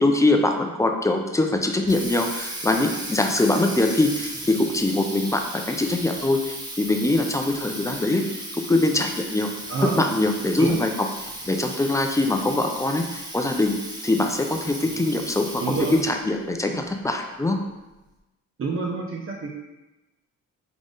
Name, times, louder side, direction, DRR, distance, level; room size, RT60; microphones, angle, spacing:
voice 1, 0.0-8.2 8.7-9.5 10.0-11.1 11.4-15.6 16.0-17.6, left 2 dB, 10° left, 4 dB, 0.5 m, -23 dB
Water tap faucet, 1.6-16.3, right 1 dB, 15° right, 0.9 m, -36 dB
voice 2, 15.6-16.0 18.6-19.5, right 4 dB, 45° right, -1 dB, 0.7 m, -27 dB
3.9 x 3.3 x 3.7 m, 1.0 s
cardioid pair, 90°, 30 cm